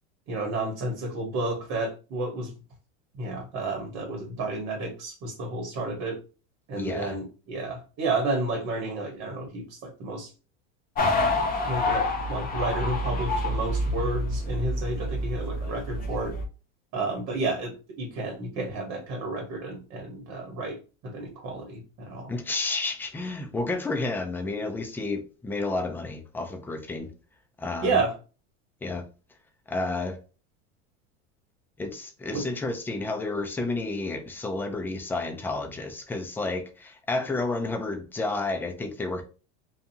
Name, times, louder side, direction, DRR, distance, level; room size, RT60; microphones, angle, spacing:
voice 1, 0.3-2.5 3.2-6.2 6.7-10.3 11.6-16.3 16.9-20.8 21.0-22.3 27.8-28.1 32.3-32.4, right 2 dB, 45° right, 1.1 m, -31 dB
voice 2, 6.7-7.2 22.3-27.1 27.6-28.0 28.8-29.0 29.7-30.2 31.8-39.2, left 2 dB, 5° left, 0.4 m, -31 dB
sound 1, 11.0-16.4, left 1 dB, 25° left, 0.8 m, -28 dB
2.6 x 2.3 x 2.6 m
supercardioid pair, 105°, 35 cm